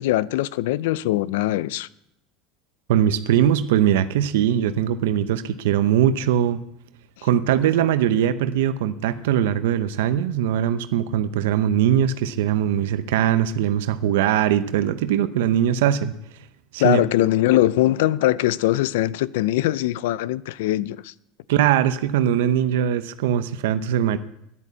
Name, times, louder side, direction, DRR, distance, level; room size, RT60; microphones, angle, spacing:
voice 1, 0.0-1.9 7.2-7.3 16.8-21.1, left 15 dB, 85° left, 0.5 m, -21 dB
voice 2, 2.9-6.6 7.2-16.1 16.7-17.0 21.5-24.2, right 10 dB, 90° right, 0.7 m, -21 dB
11.0 x 10.5 x 8.4 m
supercardioid pair, 145°, 0 cm